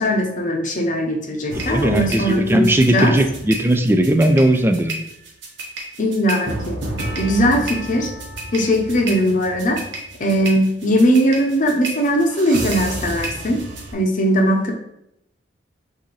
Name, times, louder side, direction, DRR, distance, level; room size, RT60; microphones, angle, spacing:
voice 1, 0.0-3.1 6.0-6.8 7.2-8.1 8.5-9.8 10.2-13.6 13.9-14.7, equal, 45° left, 2 dB, 0.8 m, -19 dB
sound 1, 1.5-13.9, right 1 dB, 85° right, 1.1 m, -31 dB
voice 2, 1.7-5.0, right 1 dB, 10° right, 7 dB, 0.4 m, -17 dB
6.0 x 2.7 x 3.2 m, 0.81 s
head